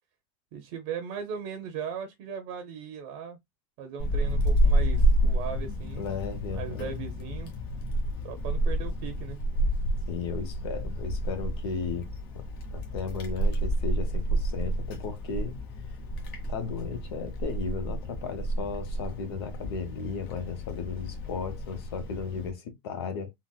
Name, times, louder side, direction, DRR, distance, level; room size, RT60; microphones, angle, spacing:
voice 1, 0.5-3.4 3.8-6.1 6.5-7.5 8.2-9.4, right 7 dB, 50° right, 0.7 m, -38 dB
Wind, 4.0-22.5, right 1 dB, 65° left, 1.2 m, -29 dB
voice 2, 6.0-7.0 10.1-12.1 12.3-12.4 12.7-15.5 16.5-23.3, left 5 dB, 80° left, 0.9 m, -35 dB
3.9 x 2.1 x 2.2 m
supercardioid pair, 160°, 13 cm